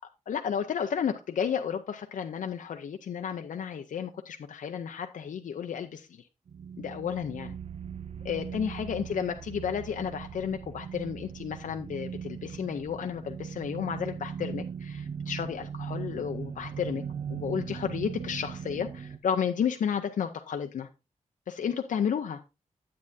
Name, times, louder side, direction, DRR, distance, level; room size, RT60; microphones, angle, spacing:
voice 1, 0.3-6.3 6.8-7.6 8.2-17.0 17.3-20.9 21.5-22.4, left 7 dB, 90° left, 0.5 m, -32 dB
sound 1, 6.5-19.2, right 7 dB, 55° right, 0.5 m, -39 dB
9.6 x 8.4 x 2.6 m
wide cardioid pair, 100°, 13 cm